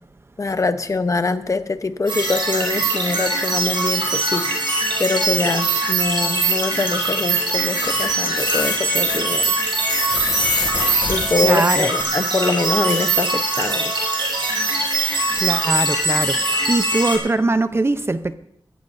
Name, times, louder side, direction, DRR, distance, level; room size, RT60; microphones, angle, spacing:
voice 1, 0.4-4.4 5.0-9.5 11.1-13.9, left 3 dB, 40° left, 11 dB, 0.8 m, -23 dB
sound 1, 2.1-17.2, right 2 dB, 75° right, 7.2 m, -22 dB
sound 2, 6.0-6.8 7.4-7.5 7.7-12.0, left 3 dB, 70° left, 2.1 m, -26 dB
voice 2, 11.4-11.9 15.4-16.4 16.7-18.3, right 2 dB, 30° right, 12 dB, 0.6 m, -21 dB
24.0 x 14.0 x 2.6 m, 0.70 s
wide cardioid pair, 100°, 8 cm